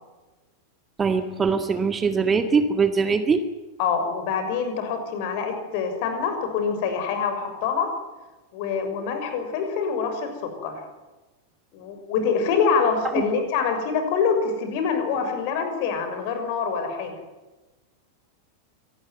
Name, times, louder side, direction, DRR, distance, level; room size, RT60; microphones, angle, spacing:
voice 1, 1.0-3.4, right 5 dB, 20° right, 9 dB, 1.9 m, -22 dB
voice 2, 3.8-7.9 8.5-10.3 10.6-10.7 11.7-17.1, left 6 dB, 45° left, 7 dB, 6.5 m, -25 dB
25.5 x 19.0 x 9.5 m, 1.2 s
figure-of-eight pair, 90°, 0 cm